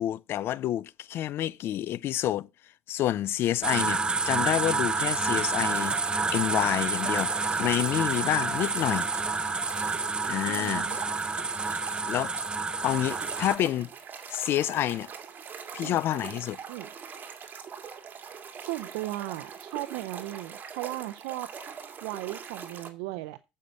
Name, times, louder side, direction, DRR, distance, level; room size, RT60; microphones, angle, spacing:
voice 1, 0.0-2.5 2.9-4.0 4.3-6.0 6.3-9.1 10.3-10.9 12.1-12.3 12.8-13.9 14.3-15.1 15.7-16.6, left 12 dB, 60° left, 0.5 m, -28 dB
sound 1, 3.6-13.6, right 4 dB, 20° right, 0.5 m, -29 dB
sound 2, 4.3-9.7, left 2 dB, 30° left, 1.5 m, -47 dB
sound 3, 5.7-22.9, right 6 dB, 45° right, 1.9 m, -42 dB
voice 2, 10.5-11.0 15.8-16.0 16.7-16.9 18.6-21.5 22.0-23.4, right 17 dB, 90° right, 0.6 m, -36 dB
8.0 x 5.6 x 6.4 m
supercardioid pair, 90°, 4 cm